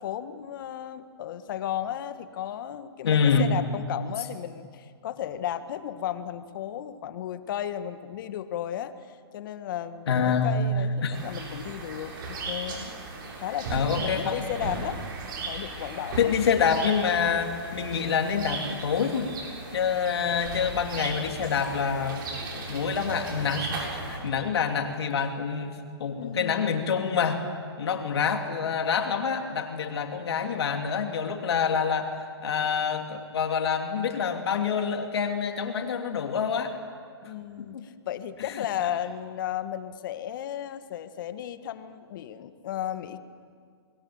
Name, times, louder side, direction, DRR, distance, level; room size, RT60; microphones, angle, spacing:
voice 1, 0.0-12.8 13.4-15.0 15.4-16.3 26.2-27.1 37.2-43.2, left 10 dB, 50° left, 11 dB, 1.6 m, -34 dB
voice 2, 3.0-3.5 10.1-10.7 11.0-11.1 13.7-14.4 16.2-19.3 19.7-22.3 22.5-27.4 27.8-32.2 32.4-36.7 37.2-37.8 38.4-38.6, left 6 dB, 70° left, 4 dB, 3.0 m, -27 dB
sound 1, 11.1-24.2, right 3 dB, 50° right, 7.4 m, -36 dB
30.0 x 22.0 x 8.0 m, 2.1 s
hypercardioid pair, 145°, 14 cm